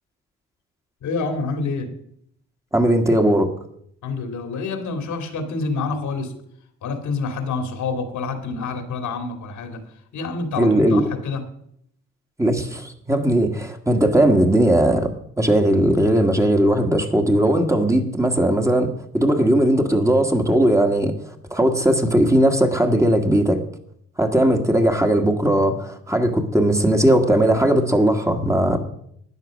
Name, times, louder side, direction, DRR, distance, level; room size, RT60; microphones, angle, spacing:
voice 1, 1.0-1.9 4.0-6.4 6.8-9.8 10.1-11.4, left 4 dB, 75° left, 6 dB, 2.5 m, -27 dB
voice 2, 2.7-3.5 10.6-11.0 12.4-23.6 24.2-28.8, right 1 dB, 10° right, 4 dB, 1.7 m, -18 dB
12.5 x 9.3 x 6.4 m, 0.69 s
cardioid pair, 90°, 30 cm